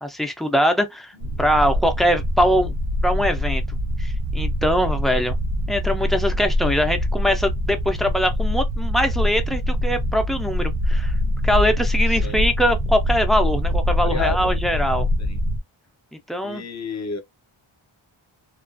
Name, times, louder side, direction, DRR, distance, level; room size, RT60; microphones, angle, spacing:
voice 1, 0.0-2.8 3.0-5.4 5.7-11.1 11.4-15.1 16.3-16.6, equal, ahead, 0.3 m, -22 dB
sound 1, 1.2-15.6, left 1 dB, 90° right, 0.7 m, -24 dB
voice 2, 14.0-14.5 15.2-15.4 16.4-17.2, left 5 dB, 35° left, 0.6 m, -31 dB
2.4 x 2.3 x 2.4 m
wide cardioid pair, 125°, 48 cm